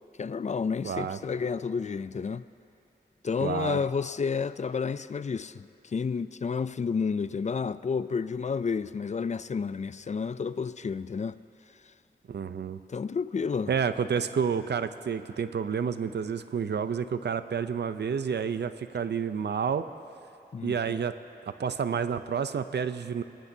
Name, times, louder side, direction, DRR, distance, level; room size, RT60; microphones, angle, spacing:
voice 1, 0.2-2.4 3.2-11.4 12.9-13.7 20.5-21.0, left 5 dB, 45° left, 15 dB, 0.4 m, -30 dB
voice 2, 0.8-1.2 3.4-3.8 12.3-12.8 13.7-19.9 20.6-21.1 21.5-23.2, right 6 dB, 85° right, 11 dB, 0.6 m, -29 dB
27.5 x 18.0 x 2.7 m, 2.7 s
wide cardioid pair, 95°, 17 cm